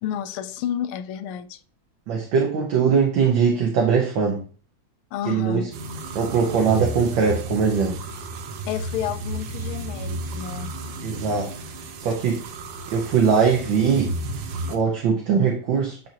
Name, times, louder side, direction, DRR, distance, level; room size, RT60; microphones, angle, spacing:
voice 1, 0.0-1.6 5.1-5.8 8.7-10.7, left 10 dB, 80° left, 1.4 m, -30 dB
voice 2, 2.1-4.4 5.2-5.7 6.1-8.0 11.0-11.5 12.0-12.4 12.9-14.1 14.7-16.1, right 6 dB, 65° right, 1.6 m, -21 dB
sound 1, 5.7-14.8, right 1 dB, 85° right, 1.7 m, -33 dB
8.6 x 4.4 x 2.9 m
omnidirectional pair, 2.4 m